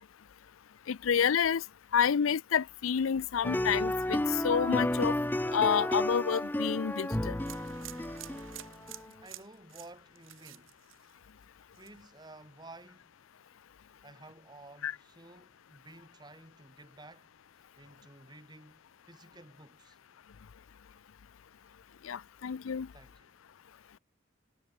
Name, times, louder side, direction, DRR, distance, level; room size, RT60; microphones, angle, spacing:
voice 1, 0.9-1.6 1.9-5.2 5.5-7.4 14.8-14.9 22.0-22.9, left 7 dB, 85° left, 0.5 m, -29 dB
sound 1, 3.4-9.1, left 1 dB, 10° left, 0.6 m, -32 dB
sound 2, 7.4-11.4 11.7-12.2, right 10 dB, 80° right, 3.6 m, -49 dB
voice 2, 9.2-10.8 11.8-13.1 14.0-17.3 17.8-20.0 22.9-23.3, right 2 dB, 20° right, 7.2 m, -53 dB
head